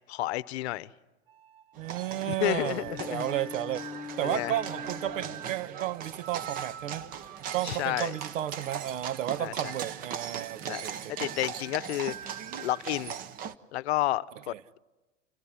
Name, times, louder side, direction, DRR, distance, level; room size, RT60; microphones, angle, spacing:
voice 1, 0.1-0.9 2.3-3.2 4.2-4.6 7.6-8.1 9.4-9.7 10.7-10.8 11.1-13.1 13.7-14.8, left 16 dB, 55° left, 0.9 m, -31 dB
sound 1, 1.3-12.9, right 10 dB, 45° right, 1.0 m, -48 dB
sound 2, 1.8-13.5, right 8 dB, 20° right, 0.8 m, -40 dB
voice 2, 1.8-3.8 4.2-7.1 7.5-11.1 14.5-14.6, right 13 dB, 75° right, 1.0 m, -33 dB
Bowed string instrument, 2.7-5.7, left 5 dB, 10° left, 1.0 m, -43 dB
29.5 x 16.0 x 9.9 m
supercardioid pair, 150°, 38 cm